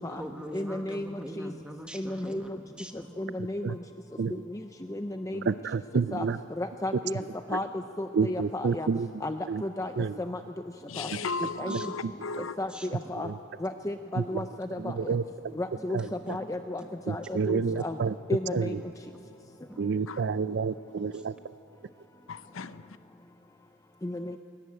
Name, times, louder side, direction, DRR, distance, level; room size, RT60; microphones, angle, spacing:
voice 1, 0.0-3.1 10.8-10.9 11.7-11.9 12.6-12.9 15.8-16.4 16.8-16.9 18.8-18.9 19.7-19.8, equal, 5° right, 1.4 m, -43 dB
voice 2, 0.5-1.5 1.9-2.4 3.2-3.8 4.9-5.4 6.1-6.2 6.6-7.2 7.5-7.7 8.0-8.9 9.2-9.9 10.2-10.4 11.0-11.1 11.6-11.7 12.6-13.3 13.6-15.1 15.6-16.0 16.3-16.8 17.1-18.0 18.3-18.7 24.0-24.3, left 1 dB, 15° left, 0.5 m, -33 dB
voice 3, 3.4-3.8 4.2-4.4 5.4-6.4 6.9-7.2 7.5-7.6 8.1-9.6 10.0-10.2 11.7-11.8 13.1-13.4 14.1-14.5 14.8-15.6 15.9-16.4 17.1-18.2 18.5-18.8 19.8-21.3, right 5 dB, 55° right, 0.4 m, -30 dB
voice 4, 10.9-12.6 17.7-17.8 20.1-20.3 22.3-23.0, left 4 dB, 75° left, 0.7 m, -36 dB
21.0 x 17.5 x 9.0 m
head